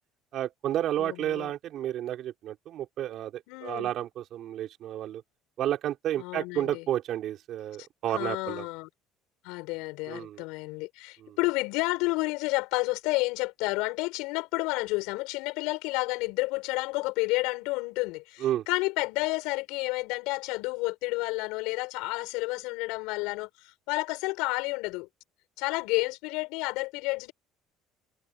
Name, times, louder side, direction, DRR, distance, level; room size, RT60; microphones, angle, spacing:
voice 1, 0.3-5.2 5.6-8.7 10.1-10.4 11.2-11.4 18.4-18.7, right 12 dB, 55° right, 5.7 m, -31 dB
voice 2, 1.0-1.5 3.5-3.9 6.2-6.8 7.8-7.9 8.1-8.9 9.4-25.1 25.6-27.3, left 24 dB, 80° left, 7.2 m, -30 dB
cardioid pair, 110°, 0 cm